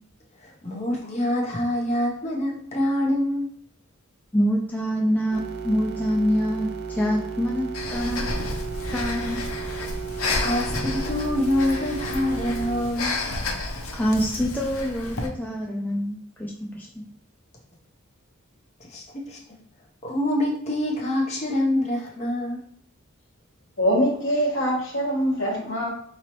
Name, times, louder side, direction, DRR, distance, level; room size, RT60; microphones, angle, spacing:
voice 1, 0.4-3.5 10.4-13.2 18.9-19.4 20.0-22.6, left 1 dB, 30° left, 0.8 m, -25 dB
voice 2, 4.3-8.2 8.9-9.4 14.0-17.0, equal, 10° left, 0.4 m, -25 dB
sound 1, 5.3-12.8, right 5 dB, 50° right, 0.5 m, -34 dB
Breathing, 7.7-15.3, left 2 dB, 90° left, 0.6 m, -31 dB
voice 3, 23.8-25.9, equal, 60° left, 1.2 m, -23 dB
3.8 x 3.0 x 3.0 m
head